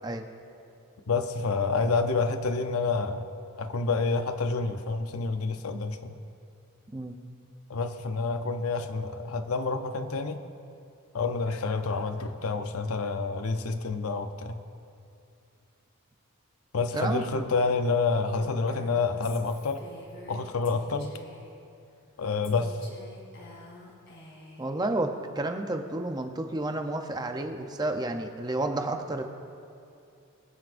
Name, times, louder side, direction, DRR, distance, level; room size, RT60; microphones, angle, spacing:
voice 1, 1.1-3.2 3.6-6.1 7.7-10.4 11.1-14.6 16.7-19.8 20.3-21.1 22.2-22.7, left 4 dB, 80° left, 8 dB, 0.7 m, -28 dB
voice 2, 16.9-17.5 24.6-29.2, right 2 dB, 20° right, 5 dB, 0.6 m, -31 dB
Female speech woman speaking, 18.3-21.5 22.4-24.7, left 2 dB, 55° left, 2.6 m, -48 dB
23.5 x 9.5 x 2.6 m, 2.6 s
head